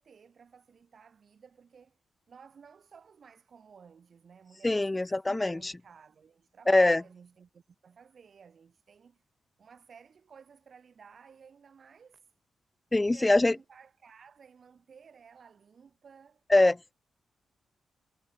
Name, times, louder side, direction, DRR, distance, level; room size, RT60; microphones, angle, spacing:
voice 1, 0.0-2.0 2.3-9.2 9.6-12.3 13.1-16.4, right 6 dB, 60° right, 2.7 m, -56 dB
voice 2, 4.6-5.7 6.7-7.0 12.9-13.5 16.5-16.9, left 2 dB, 20° left, 0.4 m, -23 dB
cardioid pair, 60°, 0 cm